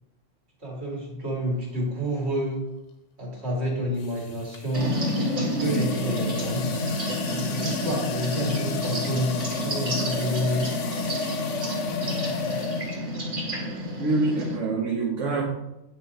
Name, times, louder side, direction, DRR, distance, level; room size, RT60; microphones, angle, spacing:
voice 1, 0.6-2.6 3.2-6.6 7.3-9.3 9.6-10.7 12.4-12.6, equal, 55° right, -4 dB, 2.5 m, -29 dB
sound 1, 2.0-2.3 4.0-13.2, left 6 dB, 70° left, 1.1 m, -34 dB
sound 2, 4.7-14.6, equal, 85° right, 2.5 m, -29 dB
voice 2, 14.0-15.4, right 3 dB, 70° right, -3 dB, 1.4 m, -25 dB
8.9 x 3.6 x 4.4 m, 0.92 s
omnidirectional pair, 1.4 m